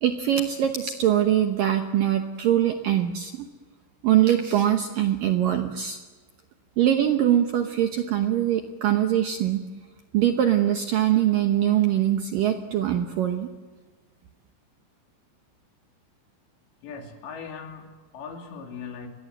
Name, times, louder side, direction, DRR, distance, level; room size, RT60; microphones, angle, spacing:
voice 1, 0.0-3.5 4.0-6.0 6.8-9.6 10.1-13.5, right 11 dB, 85° right, 6 dB, 1.9 m, -22 dB
voice 2, 16.8-19.1, left 5 dB, 65° left, 3 dB, 5.0 m, -39 dB
29.0 x 22.5 x 7.9 m, 1.3 s
omnidirectional pair, 5.6 m